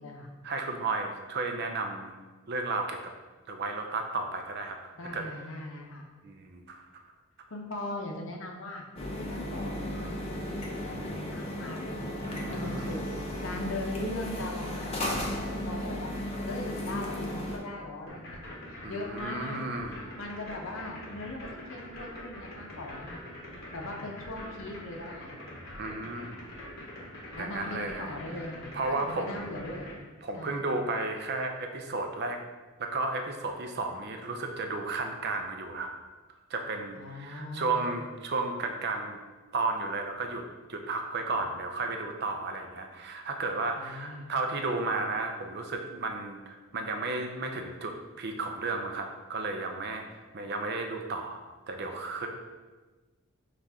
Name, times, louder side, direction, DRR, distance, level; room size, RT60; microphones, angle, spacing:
voice 1, 0.4-2.2 2.5-3.0 3.5-5.2 6.2-7.0 12.2-13.0 18.8-20.1 25.8-26.5 27.4-28.1 28.7-29.5 30.2-32.4 32.8-35.9 36.5-39.2 39.5-40.4 40.7-52.3, right 3 dB, 50° right, 4 dB, 0.5 m, -33 dB
voice 2, 5.0-6.1 7.5-8.9 9.1-12.1 12.5-13.0 13.4-15.2 15.5-16.1 16.4-18.4 18.9-19.6 19.9-23.3 23.7-25.3 27.3-29.9 30.3-30.6 37.0-37.9 43.8-44.3, left 2 dB, 65° left, 1 dB, 0.7 m, -40 dB
sound 1, 9.0-17.6, left 1 dB, 30° left, 0.5 m, -35 dB
sound 2, 18.1-29.9, left 1 dB, 45° left, 1.1 m, -44 dB
5.7 x 2.5 x 3.4 m, 1.3 s
head